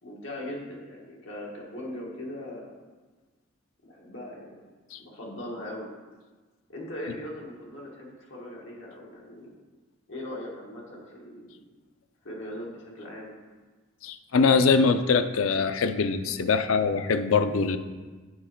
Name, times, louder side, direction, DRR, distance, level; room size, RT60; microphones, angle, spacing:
voice 1, 0.0-2.8 3.8-4.6 5.0-5.9 6.7-9.5 10.1-11.5 12.2-13.3, left 1 dB, 70° left, -2 dB, 1.5 m, -39 dB
voice 2, 14.0-17.8, left 4 dB, 90° left, 10 dB, 0.5 m, -23 dB
8.7 x 4.2 x 4.5 m, 1.3 s
head